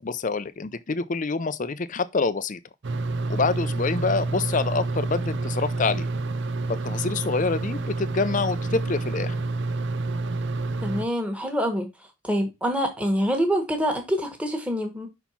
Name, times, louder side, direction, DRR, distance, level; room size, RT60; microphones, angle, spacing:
voice 1, 0.0-2.6 3.3-6.1 6.7-9.3, left 4 dB, 35° left, 0.5 m, -26 dB
sound 1, 2.8-11.0, right 2 dB, 55° right, 0.5 m, -28 dB
voice 2, 10.8-11.9 12.2-15.1, equal, 5° right, 1.4 m, -25 dB
5.7 x 4.4 x 5.7 m
head